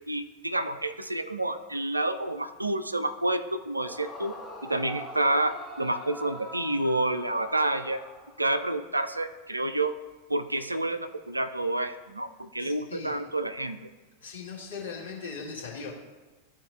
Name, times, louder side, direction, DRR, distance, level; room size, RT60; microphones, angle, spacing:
voice 1, 0.1-4.3 4.6-8.0 8.4-9.9 10.3-13.8, right 2 dB, 85° right, 10 dB, 0.4 m, -29 dB
Yell / Screaming, 3.7-8.7, equal, 5° right, 1.0 m, -43 dB
voice 2, 12.6-13.1 14.2-15.9, left 5 dB, 70° left, -5 dB, 1.9 m, -39 dB
12.5 x 4.3 x 2.4 m, 1.2 s
figure-of-eight pair, 90°, 0 cm